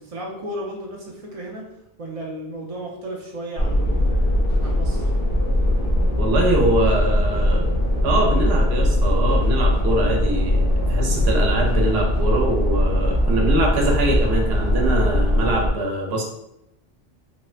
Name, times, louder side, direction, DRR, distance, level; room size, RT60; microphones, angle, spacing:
voice 1, 0.0-1.6 2.0-5.0, right 1 dB, 50° right, -1 dB, 0.4 m, -34 dB
sound 1, 3.6-15.7, left 1 dB, 65° left, 0.8 m, -20 dB
voice 2, 6.2-7.6 8.0-16.2, right 1 dB, 75° right, 0 dB, 0.9 m, -23 dB
2.9 x 2.1 x 2.4 m, 0.84 s
omnidirectional pair, 1.1 m